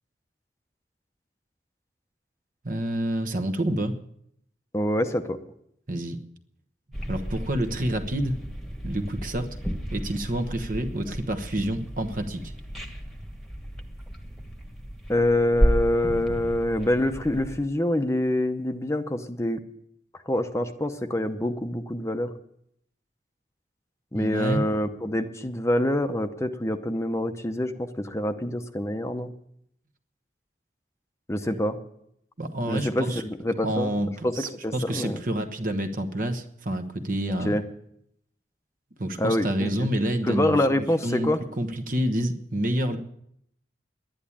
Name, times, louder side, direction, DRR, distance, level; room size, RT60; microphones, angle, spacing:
voice 1, 2.6-3.9 5.9-6.2 7.1-8.4 8.8-9.6 9.9-12.5 24.1-24.6 32.4-33.2 33.6-37.5 39.0-41.3 41.6-43.0, right 1 dB, 50° right, 8 dB, 1.2 m, -28 dB
voice 2, 4.7-5.4 15.1-19.6 20.3-22.3 24.1-29.3 31.3-31.8 32.7-33.9 34.2-35.2 37.4-37.6 39.2-39.9 40.2-41.4, left 1 dB, 15° left, 7 dB, 0.8 m, -26 dB
sound 1, 6.9-17.6, equal, ahead, 1.4 m, -32 dB
11.0 x 10.5 x 8.6 m, 0.73 s
head